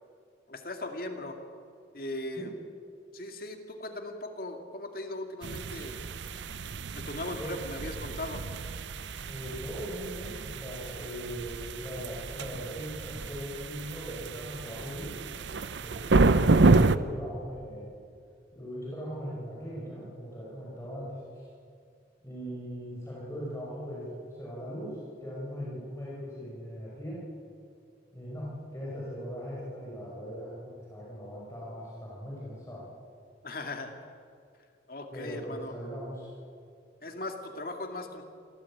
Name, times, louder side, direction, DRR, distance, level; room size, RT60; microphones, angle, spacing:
voice 1, 0.5-1.4 1.9-2.5 3.1-6.0 6.9-8.4 33.4-33.9 34.9-35.8 37.0-38.2, left 2 dB, 50° left, 4 dB, 2.3 m, -38 dB
sound 1, 5.4-17.0, right 3 dB, 80° right, 0.7 m, -29 dB
voice 2, 9.3-15.1 15.8-17.9 18.5-21.5 22.2-27.2 28.1-32.8 35.1-36.3, equal, 15° left, -6 dB, 5.5 m, -39 dB
26.5 x 15.0 x 8.6 m, 2.4 s
head